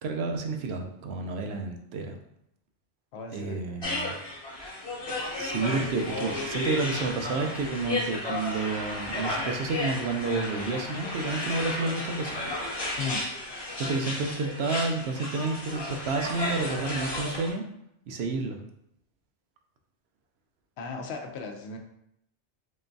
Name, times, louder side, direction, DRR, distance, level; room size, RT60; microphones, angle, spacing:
voice 1, 0.0-2.2 3.3-4.2 5.3-12.4 13.8-17.6 18.1-18.6, right 3 dB, 70° right, 3 dB, 0.8 m, -30 dB
voice 2, 3.1-3.9 13.0-13.2 20.8-21.8, left 4 dB, 75° left, 3 dB, 0.8 m, -36 dB
sound 1, 3.8-17.5, left 1 dB, 25° left, 0.9 m, -33 dB
3.7 x 3.4 x 2.6 m, 0.76 s
omnidirectional pair, 1.2 m